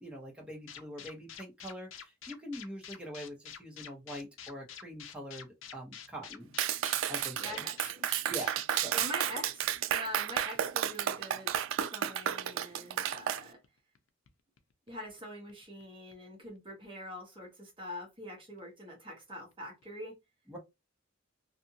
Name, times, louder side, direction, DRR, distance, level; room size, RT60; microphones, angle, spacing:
voice 1, 0.0-6.5 7.1-7.6 8.3-8.9 20.5-20.6, equal, 5° right, 1.0 m, -44 dB
sound 1, 0.7-10.9 11.2-11.3 11.5-11.6 11.8-11.9 12.1-12.4 12.7-12.8 13.0-13.3 13.6-14.0 14.3-14.4 14.6-15.2 15.5-16.1 16.4-16.6 18.6-18.7 18.9-19.0 19.2-19.3 19.5-19.6 19.8-19.9, left 8 dB, 75° left, 0.5 m, -47 dB
Clapping, 6.6-13.4, right 10 dB, 70° right, 0.3 m, -32 dB
voice 2, 7.3-8.1 8.9-13.6 14.9-20.2, left 1 dB, 25° right, 1.0 m, -44 dB
2.6 x 2.4 x 2.6 m
head